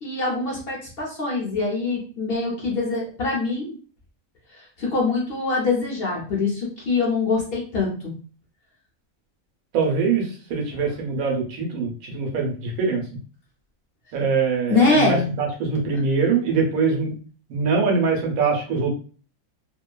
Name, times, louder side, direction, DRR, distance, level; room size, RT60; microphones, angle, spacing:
voice 1, 0.0-3.8 4.5-8.1 14.7-15.3, left 3 dB, 55° left, -2 dB, 0.7 m, -24 dB
voice 2, 9.7-13.0 14.1-17.1 17.5-19.0, right 4 dB, 80° right, 1 dB, 1.1 m, -23 dB
2.7 x 2.2 x 2.2 m, 0.40 s
omnidirectional pair, 1.5 m